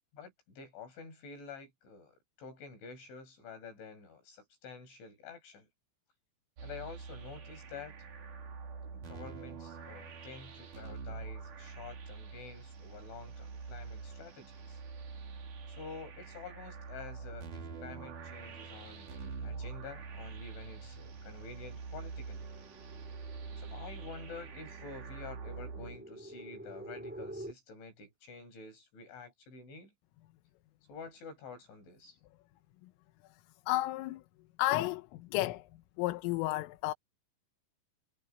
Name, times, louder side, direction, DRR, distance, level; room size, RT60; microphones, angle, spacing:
voice 1, 0.1-5.7 6.6-7.9 9.1-14.8 15.7-22.5 23.6-29.9 30.9-32.2, left 5 dB, 65° left, 10.0 m, -49 dB
sound 1, 6.6-26.0, right 5 dB, 45° right, 3.8 m, -45 dB
sound 2, 21.9-27.5, right 1 dB, 5° right, 1.0 m, -50 dB
voice 2, 33.7-34.2 34.6-35.7 36.0-36.9, left 17 dB, 85° left, 3.6 m, -32 dB
omnidirectional pair, 5.8 m